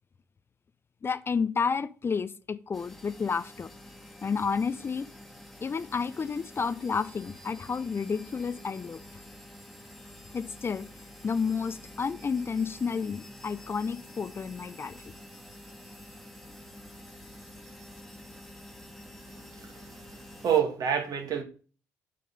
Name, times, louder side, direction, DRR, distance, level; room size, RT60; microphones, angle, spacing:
voice 1, 1.0-3.7 4.2-5.1 5.6-9.0 10.3-10.9 11.2-15.0, left 5 dB, 30° left, 0.5 m, -31 dB
sound 1, 2.7-20.6, left 1 dB, ahead, 1.7 m, -48 dB
voice 2, 19.3-20.2 20.4-21.4, right 8 dB, 55° right, 1.8 m, -29 dB
7.3 x 4.2 x 5.3 m
hypercardioid pair, 50°, 8 cm